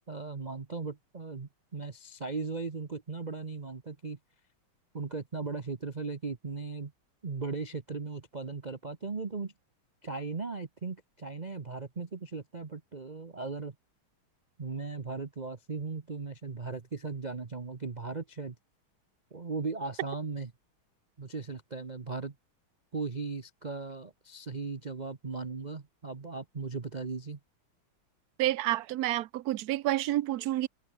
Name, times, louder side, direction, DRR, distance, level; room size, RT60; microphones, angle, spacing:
voice 1, 0.1-4.2 4.9-6.9 7.2-9.5 10.0-13.7 14.6-18.6 19.3-20.5 21.2-22.3 22.9-27.4, right 4 dB, 30° right, 0.8 m, -37 dB
voice 2, 28.4-30.7, right 14 dB, 80° right, 0.8 m, -29 dB
omnidirectional pair, 2.3 m